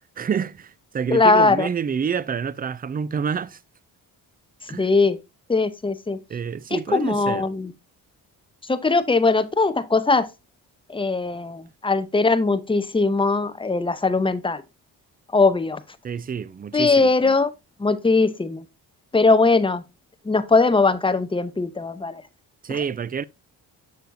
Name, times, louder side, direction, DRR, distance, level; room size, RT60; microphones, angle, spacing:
voice 1, 0.2-3.6 4.7-4.9 6.3-7.4 16.0-17.1 22.6-23.2, right 7 dB, 25° right, 0.3 m, -28 dB
voice 2, 1.1-1.7 4.8-5.2 5.5-6.2 6.7-7.7 8.6-10.3 10.9-14.6 15.3-15.8 16.7-17.5 17.8-18.6 19.1-19.8 20.2-22.2 22.7-22.8, left 3 dB, 10° left, 0.7 m, -20 dB
6.7 x 6.3 x 2.6 m
cardioid pair, 65°, 43 cm